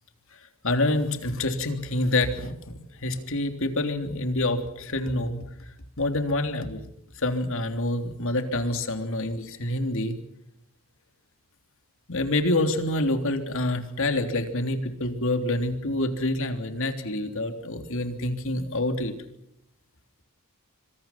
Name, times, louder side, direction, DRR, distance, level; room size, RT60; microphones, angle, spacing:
voice 1, 0.6-5.4 6.0-6.8 7.2-10.2 12.1-19.1, left 2 dB, 60° left, 7 dB, 3.3 m, -27 dB
26.5 x 25.5 x 5.9 m, 0.81 s
head